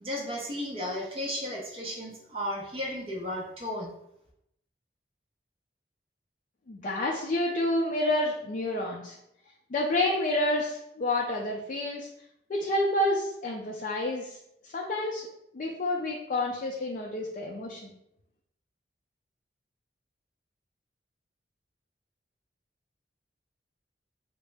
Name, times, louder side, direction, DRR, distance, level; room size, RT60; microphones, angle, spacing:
voice 1, 0.0-3.9, left 1 dB, 30° right, -3 dB, 0.6 m, -34 dB
voice 2, 6.7-9.2 9.7-12.1 12.5-14.4 14.6-15.3 15.5-17.9, left 1 dB, 45° left, -2 dB, 0.4 m, -29 dB
3.5 x 2.0 x 3.3 m, 0.78 s
head